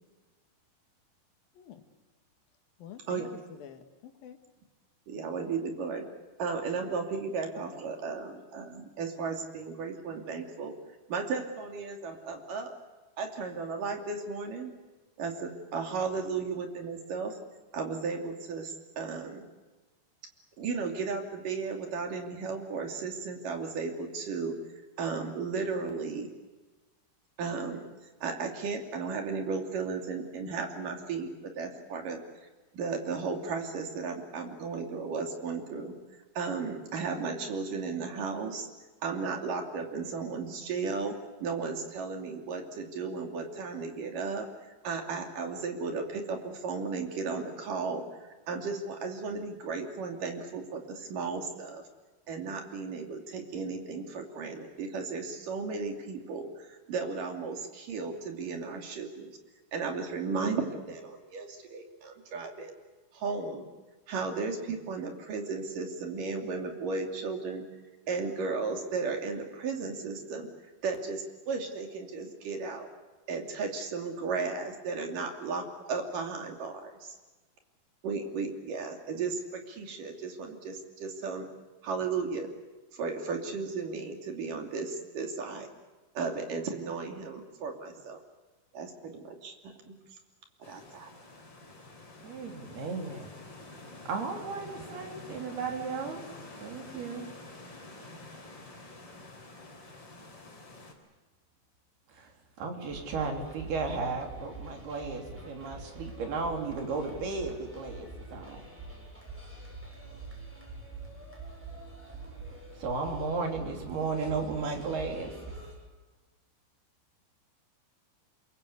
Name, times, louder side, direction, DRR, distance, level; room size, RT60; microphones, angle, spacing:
voice 1, 2.8-3.2 3.6-4.4, left 9 dB, 70° left, 7 dB, 3.4 m, -47 dB
voice 2, 5.1-6.0 6.4-10.7 11.1-12.7 13.2-14.7 15.2-17.4 17.7-19.5 20.6-24.5 25.0-26.3 27.4-27.9 28.2-31.3 31.6-32.2 32.7-35.9 36.4-38.7 39.0-44.5 44.8-51.8 52.3-59.3 59.7-62.8 63.1-63.7 64.1-67.6 68.1-70.5 70.8-72.9 73.3-77.2 78.0-81.5 81.8-82.5 82.9-85.7 86.1-88.2 88.7-89.9 90.7-91.1, right 4 dB, 60° right, 4 dB, 4.3 m, -35 dB
sound 1, 90.6-100.9, left 2 dB, 30° left, 4.7 m, -48 dB
voice 3, 92.2-93.3 94.1-96.2 96.6-97.3 102.1-102.3 102.6-108.6 112.1-112.2 112.7-115.4, right 4 dB, 90° right, 3 dB, 5.3 m, -34 dB
sound 2, 102.9-115.7, right 2 dB, 5° right, 7.4 m, -45 dB
27.5 x 22.5 x 8.4 m, 1.2 s
omnidirectional pair, 4.4 m